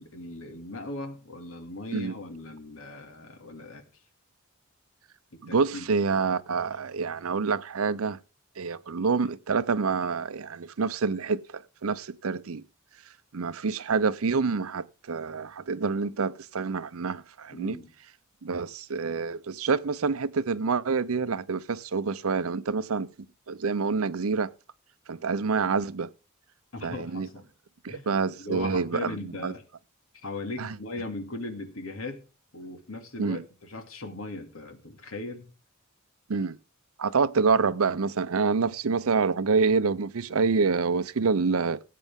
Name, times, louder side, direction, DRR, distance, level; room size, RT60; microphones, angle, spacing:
voice 1, 0.0-3.8 5.3-5.9 17.5-17.9 26.7-27.5 27.9-28.1 28.4-29.6 30.2-32.2 32.5-35.5, left 2 dB, 75° left, 2.4 m, -38 dB
voice 2, 5.4-8.2 8.6-12.6 13.3-17.8 18.4-23.1 23.5-24.5 25.1-26.1 26.8-27.3 27.8-29.5 30.6-30.7 33.2-33.4 36.3-36.6 37.0-41.8, right 4 dB, 85° right, 0.6 m, -27 dB
18.0 x 8.4 x 3.6 m
head